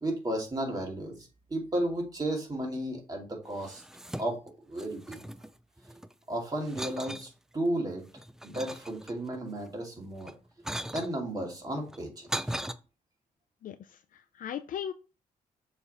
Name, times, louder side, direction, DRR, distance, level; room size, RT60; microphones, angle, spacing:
voice 1, 0.0-3.8 4.2-4.4 4.7-5.3 6.3-8.1 8.4-10.3 10.9-12.6, right 1 dB, 25° right, 2.5 m, -33 dB
sound 1, 3.5-4.5 4.8-6.1 6.6-7.3 7.9-9.4 10.2-11.1 11.9-12.7, equal, 5° right, 0.4 m, -38 dB
voice 2, 13.6-14.9, left 9 dB, 70° left, 0.5 m, -38 dB
6.9 x 3.5 x 4.2 m
cardioid pair, 105°, 14 cm